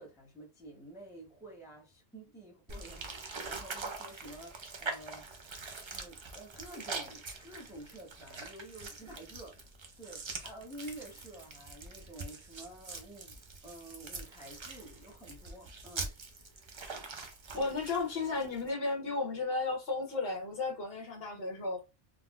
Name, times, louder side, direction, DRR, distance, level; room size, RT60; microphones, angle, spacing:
voice 1, 0.0-5.3 5.9-9.6 10.0-16.1 17.5-17.7, right 1 dB, 5° right, 0.6 m, -50 dB
sound 1, 2.7-18.7, right 3 dB, 45° right, 0.4 m, -44 dB
voice 2, 17.5-21.9, left 3 dB, 65° left, 1.1 m, -34 dB
3.8 x 2.0 x 2.3 m
omnidirectional pair, 1.1 m